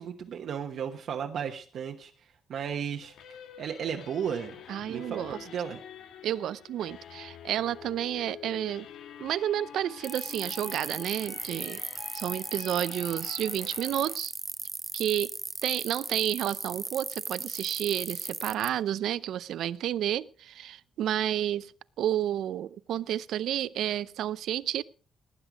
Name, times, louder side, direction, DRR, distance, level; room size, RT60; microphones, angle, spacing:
voice 1, 0.0-3.1 3.6-4.6 4.9-5.8, right 8 dB, 60° right, 1.2 m, -34 dB
sound 1, 3.0-14.1, left 9 dB, 80° left, 1.6 m, -47 dB
voice 2, 4.7-5.4 6.2-8.9 9.2-11.8 12.1-14.3 14.9-15.3 15.6-21.7 22.0-24.8, right 11 dB, 75° right, 0.6 m, -31 dB
sound 2, 10.0-18.7, right 3 dB, 15° right, 0.6 m, -37 dB
18.5 x 10.0 x 5.0 m
cardioid pair, 170°, 0 cm